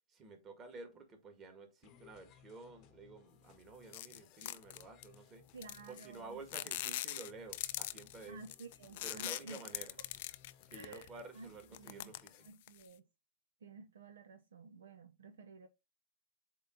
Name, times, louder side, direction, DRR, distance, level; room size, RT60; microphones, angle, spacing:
voice 1, 0.1-5.4 5.9-8.4 9.0-10.0 10.7-12.4, right 3 dB, 30° right, 2.0 m, -52 dB
sound 1, 1.8-12.5, left 9 dB, 40° left, 0.9 m, -64 dB
sound 2, 3.9-5.1 5.6-6.2 6.5-11.2 11.6-12.9, left 15 dB, 55° left, 0.4 m, -42 dB
voice 2, 5.5-6.7 8.3-9.6 10.7-11.1 11.3-12.1 12.4-13.0 13.6-15.7, right 4 dB, 70° right, 0.7 m, -53 dB
7.9 x 3.1 x 3.8 m
hypercardioid pair, 105°, 0 cm